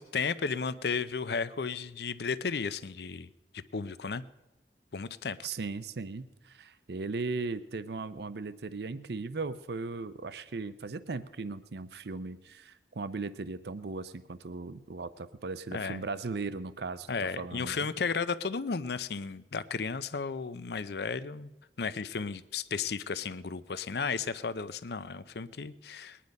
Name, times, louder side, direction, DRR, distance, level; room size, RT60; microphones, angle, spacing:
voice 1, 0.0-3.3 3.5-4.2 4.9-5.4 15.7-16.0 17.1-21.5 21.8-26.2, left 5 dB, 70° left, 15 dB, 0.6 m, -34 dB
voice 2, 5.4-17.1 17.4-17.9, right 3 dB, 70° right, 14 dB, 0.6 m, -37 dB
20.5 x 10.0 x 5.3 m, 1.0 s
head